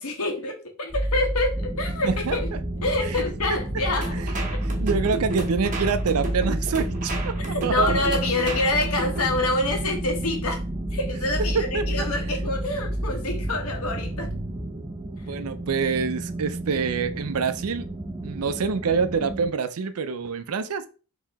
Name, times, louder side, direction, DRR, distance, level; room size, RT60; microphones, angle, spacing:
voice 1, 0.0-2.5 2.8-4.2 7.4-10.6 10.9-14.3 15.2-15.3, left 2 dB, 85° left, 1.2 m, -27 dB
sound 1, 0.9-14.7, equal, 5° left, 1.0 m, -31 dB
sound 2, 1.5-19.5, right 2 dB, 15° right, 0.6 m, -35 dB
voice 2, 2.0-2.4 3.0-3.2 4.1-4.3 4.6-8.1 11.5-12.1 15.1-17.9 18.2-20.9, right 5 dB, 85° right, 0.5 m, -26 dB
sound 3, 4.0-9.5, right 2 dB, 35° right, 0.9 m, -32 dB
4.6 x 3.0 x 3.4 m
head